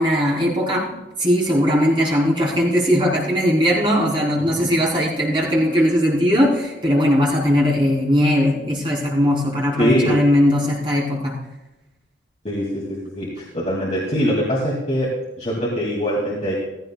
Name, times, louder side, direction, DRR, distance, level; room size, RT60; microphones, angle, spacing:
voice 1, 0.0-11.3, equal, 25° right, -4 dB, 3.7 m, -19 dB
voice 2, 9.8-10.2 12.4-15.1 15.4-16.5, equal, 35° left, -5 dB, 2.5 m, -22 dB
16.0 x 14.5 x 2.3 m, 1.0 s
head